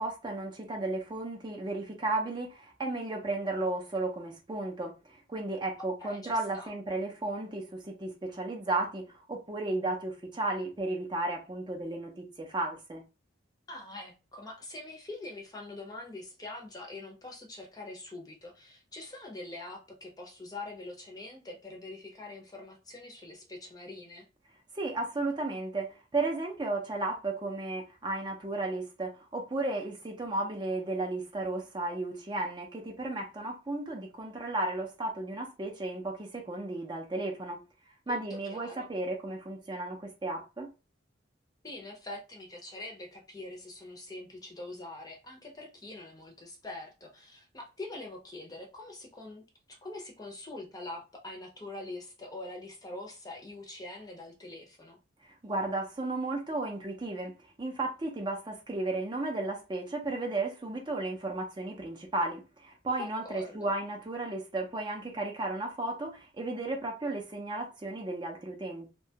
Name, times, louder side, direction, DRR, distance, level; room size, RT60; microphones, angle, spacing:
voice 1, 0.0-13.0 24.7-37.6 38.1-40.7 55.4-57.3 57.6-68.9, right 2 dB, 25° right, 0.5 m, -34 dB
voice 2, 5.8-6.7 13.7-24.3 38.1-38.9 41.6-49.4 49.7-55.0 63.0-63.7, left 2 dB, 20° left, 0.6 m, -44 dB
2.7 x 2.2 x 2.7 m
head